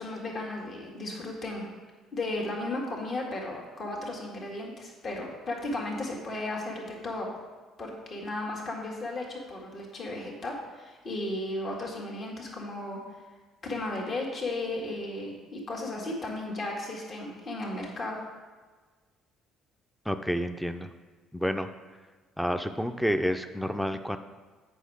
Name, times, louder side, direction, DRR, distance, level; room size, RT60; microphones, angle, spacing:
voice 1, 0.0-1.7 2.1-7.3 7.8-13.0 13.6-18.2, left 2 dB, 45° left, -1 dB, 1.7 m, -35 dB
voice 2, 20.1-20.9 21.3-21.7 22.4-24.2, equal, ahead, 8 dB, 0.5 m, -29 dB
8.2 x 5.5 x 4.7 m, 1.4 s
hypercardioid pair, 50°, 0 cm